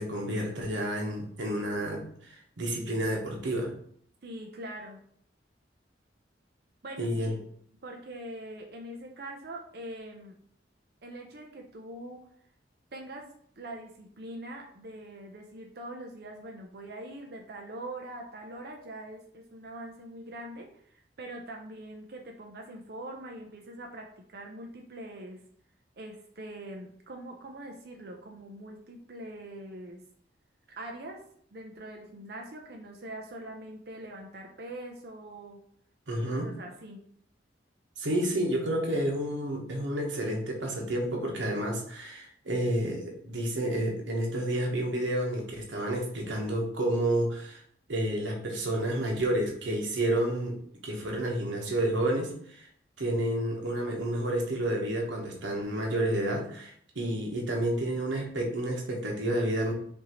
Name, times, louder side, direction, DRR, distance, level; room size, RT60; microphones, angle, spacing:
voice 1, 0.0-3.7 7.0-7.3 36.1-36.5 38.0-47.6 47.9-50.6 50.8-52.7 53.0-59.7, right 1 dB, 85° right, 0 dB, 1.1 m, -30 dB
voice 2, 4.2-5.0 6.8-7.4 7.8-10.4 11.0-12.2 12.9-13.3 13.6-20.7 20.9-25.4 26.0-30.0 30.7-31.2 31.5-35.6 36.1-37.0, right 1 dB, 55° right, 1 dB, 0.6 m, -43 dB
5.2 x 2.7 x 3.0 m, 0.63 s
head